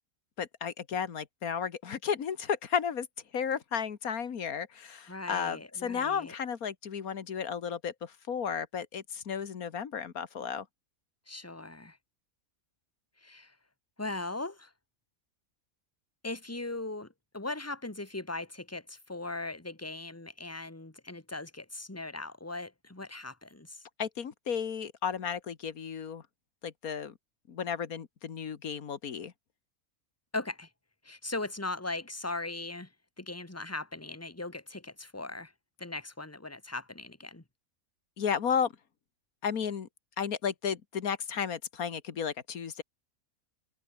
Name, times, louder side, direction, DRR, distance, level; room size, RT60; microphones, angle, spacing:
voice 1, 0.4-3.1 3.3-10.7 24.0-26.2 26.6-27.1 27.5-29.3 38.2-38.7 39.4-39.9 40.2-42.8, left 7 dB, 85° left, 1.9 m, -33 dB
voice 2, 5.1-6.4 11.3-12.0 13.2-13.5 14.0-14.7 16.2-17.1 17.3-23.8 30.3-30.7 31.0-32.9 33.2-35.5 35.8-37.4, left 2 dB, 10° left, 2.1 m, -39 dB
open air
omnidirectional pair, 1.5 m